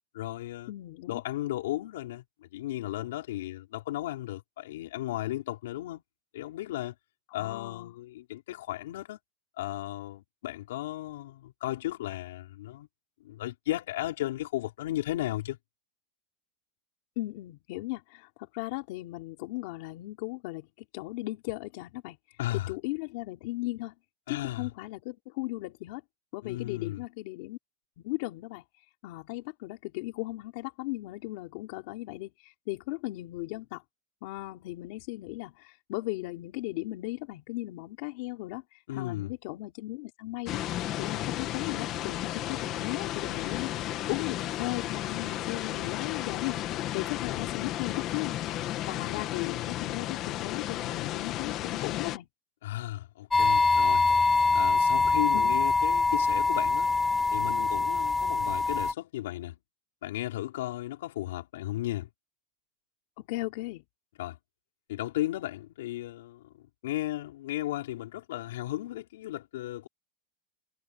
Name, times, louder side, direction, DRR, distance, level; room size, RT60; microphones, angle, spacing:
voice 1, 0.1-0.7 1.1-6.0 6.3-6.9 7.3-9.2 9.6-12.9 13.2-15.6 22.4-22.7 24.3-24.7 26.4-27.0 38.9-39.3 52.6-54.1 54.5-56.9 57.3-59.6 60.0-62.1 64.2-64.4 64.9-69.9, left 15 dB, 75° left, 5.0 m, -35 dB
voice 2, 0.7-1.2 7.3-7.9 17.1-22.4 22.7-23.9 24.3-26.0 26.3-27.6 28.0-28.6 29.0-33.8 34.2-48.4 48.9-52.3 55.3-55.6 63.3-63.8, left 20 dB, 45° left, 3.4 m, -37 dB
sound 1, 40.5-52.2, left 13 dB, 30° left, 1.3 m, -33 dB
sound 2, 53.3-58.9, left 3 dB, 5° left, 0.6 m, -24 dB
supercardioid pair, 180°, 0 cm